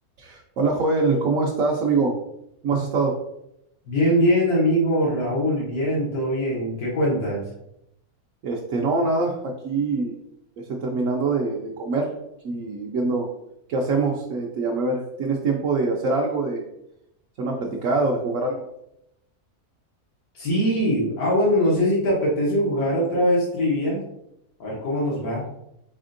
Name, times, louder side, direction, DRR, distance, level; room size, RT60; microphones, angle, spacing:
voice 1, 0.2-2.2 2.6-3.2 8.4-10.1 10.6-12.1 12.4-13.3 13.7-16.6 17.4-18.6, right 3 dB, 70° right, -1 dB, 1.0 m, -24 dB
voice 2, 3.9-7.4 20.3-24.0 24.6-25.4, equal, 80° left, -6 dB, 1.6 m, -22 dB
4.3 x 4.2 x 2.5 m, 0.80 s
omnidirectional pair, 1.5 m